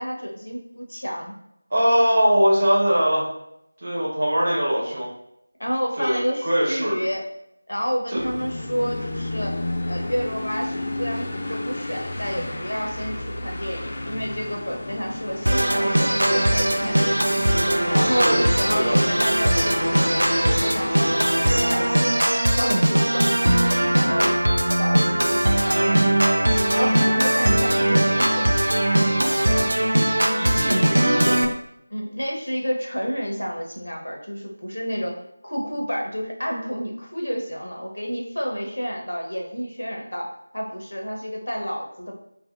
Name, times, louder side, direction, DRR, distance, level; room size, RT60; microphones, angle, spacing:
voice 1, 0.0-1.3 5.6-7.2 7.7-9.6 9.9-17.3 17.9-23.5 23.9-28.5 29.0-29.5 31.9-35.2 35.4-42.2, equal, 80° left, 0 dB, 0.7 m, -30 dB
voice 2, 1.7-3.2 3.8-5.1 6.0-7.0 8.1-8.2 18.1-19.0 30.3-31.4, equal, 45° right, -4 dB, 0.9 m, -21 dB
sound 1, 8.2-22.0, left 1 dB, 35° left, 0.4 m, -32 dB
Organ, 15.5-31.5, right 1 dB, 70° right, 0.4 m, -20 dB
2.8 x 2.6 x 2.4 m, 0.79 s
figure-of-eight pair, 170°, 0 cm